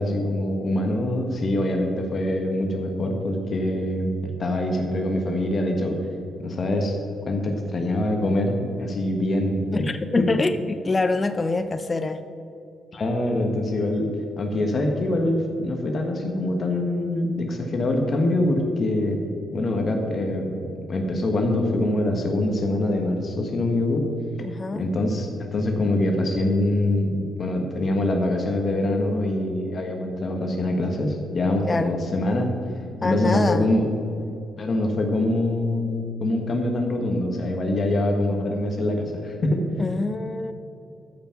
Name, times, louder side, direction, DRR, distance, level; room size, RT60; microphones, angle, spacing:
voice 1, 0.0-6.0 6.4-7.0 7.3-9.6 10.2-10.3 12.9-14.1 14.4-19.2 19.5-20.5 20.7-24.1 24.7-32.5 33.0-33.9 34.6-39.6, left 1 dB, 40° left, 3 dB, 1.3 m, -24 dB
voice 2, 9.7-12.2 24.4-24.9 31.6-32.0 33.0-33.7 39.8-40.5, left 3 dB, 20° left, 10 dB, 0.5 m, -25 dB
13.5 x 5.8 x 5.9 m, 2.7 s
cardioid pair, 135°, 0 cm